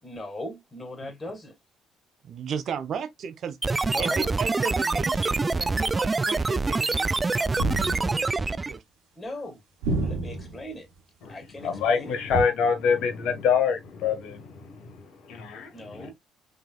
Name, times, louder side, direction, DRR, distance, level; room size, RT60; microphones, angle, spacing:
voice 1, 0.0-1.5 3.8-4.3 9.2-9.6 10.0-10.9 11.3-12.1 15.7-16.1, left 1 dB, 25° left, 2.3 m, -38 dB
voice 2, 2.2-8.8, right 6 dB, 55° right, 0.9 m, -35 dB
sound 1, 3.6-8.8, right 3 dB, 25° right, 0.3 m, -25 dB
sound 2, 7.5-8.3 9.8-10.6 12.3-12.4, right 2 dB, 75° right, 1.6 m, -29 dB
voice 3, 11.2-16.1, left 6 dB, 65° left, 1.4 m, -26 dB
5.0 x 3.9 x 2.4 m
hypercardioid pair, 50°, 0 cm